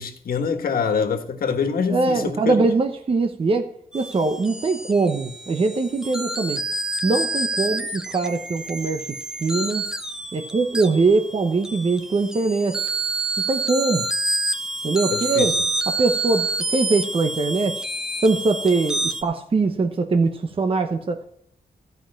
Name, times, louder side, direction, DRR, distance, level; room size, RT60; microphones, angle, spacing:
voice 1, 0.0-2.5 15.1-15.5, left 6 dB, 75° left, 1.6 m, -25 dB
voice 2, 1.9-6.6 7.0-9.1 9.4-9.8 10.3-12.9 13.5-14.1 14.8-15.5 15.9-17.9 18.2-21.3, right 3 dB, 35° right, 0.9 m, -22 dB
sound 1, 3.9-19.2, right 2 dB, 5° right, 0.8 m, -28 dB
14.5 x 5.4 x 8.8 m
wide cardioid pair, 140°, 15 cm